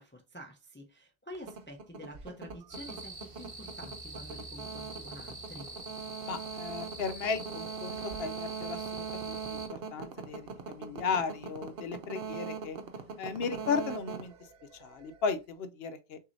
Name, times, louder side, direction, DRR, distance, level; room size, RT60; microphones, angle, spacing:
voice 1, 0.0-5.7, equal, 15° left, 0.5 m, -48 dB
sound 1, 1.3-15.2, right 6 dB, 70° right, 0.9 m, -41 dB
sound 2, 2.7-9.7, right 2 dB, 35° right, 1.2 m, -45 dB
voice 2, 6.3-9.6 9.9-12.8 13.2-14.3 14.7-16.2, left 5 dB, 75° left, 0.9 m, -35 dB
6.1 x 2.7 x 2.6 m
omnidirectional pair, 1.0 m